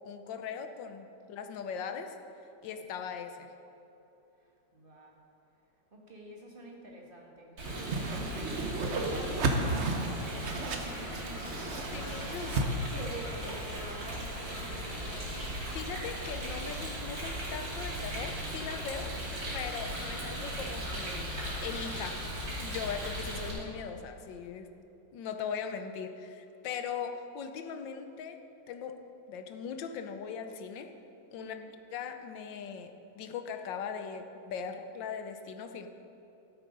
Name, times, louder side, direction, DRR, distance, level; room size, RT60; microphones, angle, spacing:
voice 1, 0.0-2.2 2.6-3.5 11.6-12.9 14.0-14.2 15.7-19.1 19.5-21.3 21.6-24.7 25.1-28.4 28.7-29.0 29.3-30.9 31.3-31.6 31.9-35.9, left 6 dB, 80° left, 7 dB, 1.5 m, -40 dB
voice 2, 4.7-5.2 5.9-7.6 8.0-12.5 12.9-15.5 31.4-31.6, right 2 dB, 30° right, -1 dB, 1.6 m, -47 dB
Whoosh swoosh swish, 7.6-12.7, right 2 dB, 50° right, 0.9 m, -33 dB
Rain, 7.6-23.5, equal, 85° right, 3.3 m, -38 dB
sound 1, 8.0-23.0, left 1 dB, 35° left, 2.6 m, -52 dB
13.0 x 8.1 x 5.2 m, 2.9 s
omnidirectional pair, 2.0 m